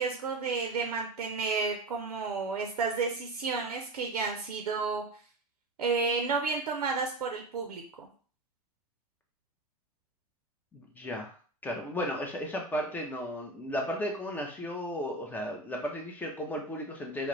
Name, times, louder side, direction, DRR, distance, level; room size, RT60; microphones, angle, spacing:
voice 1, 0.0-5.0 5.8-8.1, right 4 dB, 90° right, 2 dB, 0.5 m, -31 dB
voice 2, 10.7-11.3 11.6-17.3, equal, 10° left, 1 dB, 0.5 m, -34 dB
2.3 x 2.0 x 3.0 m, 0.42 s
hypercardioid pair, 115°, 19 cm